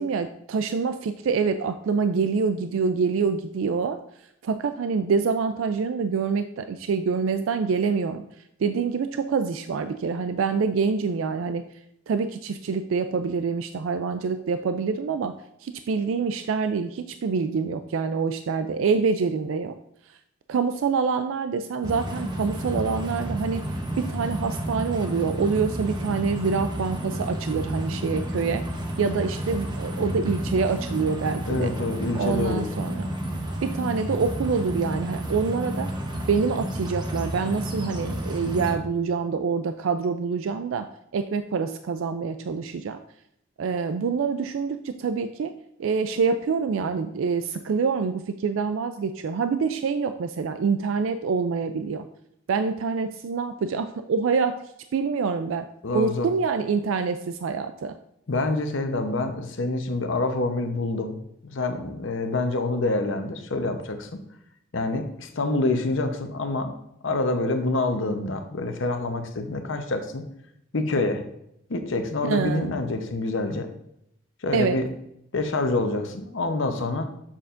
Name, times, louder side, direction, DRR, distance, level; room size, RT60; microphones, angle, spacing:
voice 1, 0.0-4.0 4.4-8.2 8.6-11.6 12.1-15.3 15.6-19.7 20.5-23.6 24.1-28.6 29.0-31.7 32.2-33.1 33.6-35.9 36.3-40.9 41.1-43.0 43.6-45.5 45.8-52.0 52.5-54.5 54.9-55.7 55.9-57.9 72.2-72.7 74.5-74.8, right 5 dB, 70° right, 8 dB, 0.4 m, -26 dB
sound 1, 21.8-38.8, equal, 20° right, 0.8 m, -31 dB
voice 2, 31.5-32.7 55.8-56.3 58.3-61.2 61.4-64.2 64.7-66.7 67.0-70.2 70.7-71.2 71.7-73.7 74.4-74.9 75.3-77.1, left 2 dB, 65° left, 6 dB, 0.9 m, -26 dB
7.3 x 6.8 x 2.5 m, 0.76 s
head